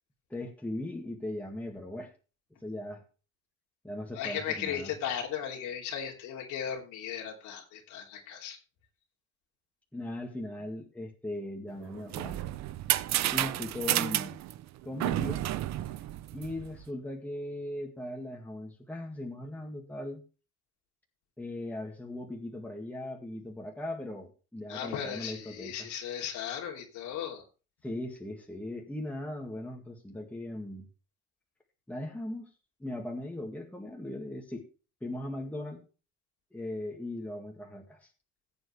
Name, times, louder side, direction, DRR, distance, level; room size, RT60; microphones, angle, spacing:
voice 1, 0.3-2.1 2.6-3.0 3.8-4.9 9.9-12.4 13.3-14.4 14.8-15.4 16.3-20.2 21.4-25.9 27.8-30.9 31.9-32.5 32.8-34.6 35.0-35.8 36.5-38.1, left 1 dB, 5° left, 1 dB, 2.0 m, -38 dB
voice 2, 4.1-8.6 24.7-27.4, left 9 dB, 90° left, 0 dB, 3.2 m, -36 dB
sound 1, 11.8-16.8, right 14 dB, 65° right, 0.7 m, -31 dB
16.5 x 8.0 x 3.3 m, 0.34 s
cardioid pair, 115°, 29 cm